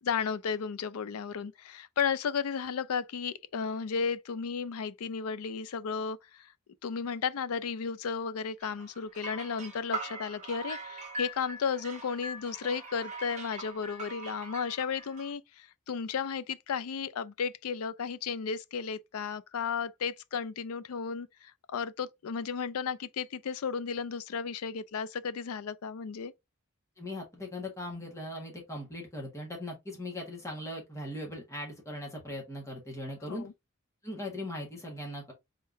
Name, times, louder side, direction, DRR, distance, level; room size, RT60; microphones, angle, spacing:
voice 1, 0.0-6.5 6.8-26.3 33.3-33.5, left 6 dB, 85° left, 0.4 m, -34 dB
sound 1, 8.6-15.3, right 2 dB, 35° right, 1.3 m, -41 dB
voice 2, 27.0-33.5 34.0-35.3, left 1 dB, 15° left, 1.5 m, -39 dB
4.4 x 3.7 x 2.6 m
head